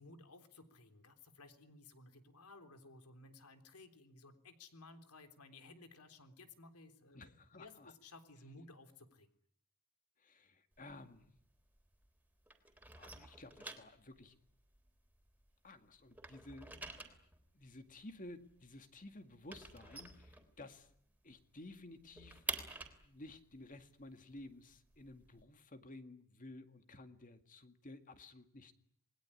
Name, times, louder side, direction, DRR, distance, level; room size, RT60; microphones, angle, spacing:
voice 1, 0.0-9.3, left 2 dB, 85° left, 8 dB, 3.6 m, -58 dB
voice 2, 7.1-7.9 10.2-11.3 13.0-14.4 15.6-16.8 17.5-20.9 21.2-22.4 23.0-28.7, left 2 dB, 35° left, 8 dB, 2.1 m, -54 dB
sound 1, 10.7-12.2 12.4-15.7 16.0-21.0 21.3-21.4 21.7-25.4, right 2 dB, 10° right, 3.5 m, -48 dB
28.5 x 21.0 x 10.0 m, 0.67 s
head